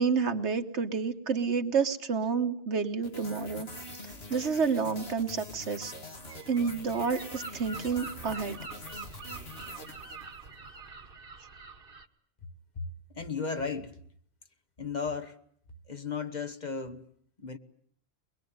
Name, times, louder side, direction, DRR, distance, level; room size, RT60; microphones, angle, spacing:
voice 1, 0.0-3.7 4.3-5.9 6.5-8.6, right 5 dB, 85° right, 1.6 m, -29 dB
sound 1, 3.0-10.6, left 1 dB, 65° left, 2.7 m, -45 dB
Gull seagull, 6.3-12.1, right 3 dB, 55° right, 1.4 m, -45 dB
voice 2, 13.1-14.0 14.8-15.4 15.9-17.1 17.4-17.6, left 5 dB, 40° left, 1.3 m, -35 dB
23.0 x 21.0 x 9.4 m
omnidirectional pair, 1.1 m